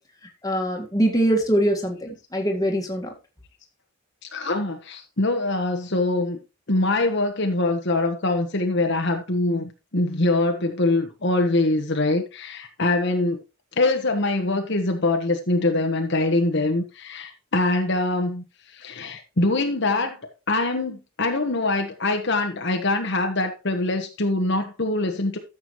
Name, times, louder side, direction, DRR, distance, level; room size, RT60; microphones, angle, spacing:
voice 1, 0.4-3.1, right 1 dB, 15° left, 1.8 m, -23 dB
voice 2, 4.3-6.4 6.7-13.4 13.8-18.4 18.7-25.4, left 2 dB, 50° left, 1.2 m, -23 dB
13.5 x 7.2 x 3.1 m
head